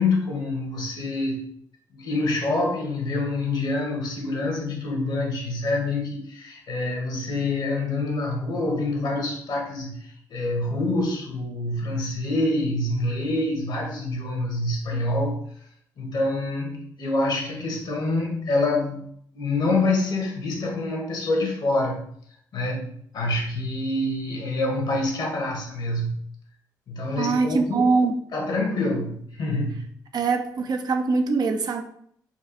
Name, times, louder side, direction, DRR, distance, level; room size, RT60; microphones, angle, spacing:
voice 1, 0.0-1.4 1.9-15.4 16.0-19.1 19.3-22.1 22.5-26.2 26.9-27.9 28.3-29.8, left 2 dB, 65° left, 1.5 m, -26 dB
voice 2, 27.2-28.2 30.1-31.8, right 4 dB, 55° right, 0.6 m, -23 dB
4.5 x 2.4 x 4.7 m
supercardioid pair, 55°, 8 cm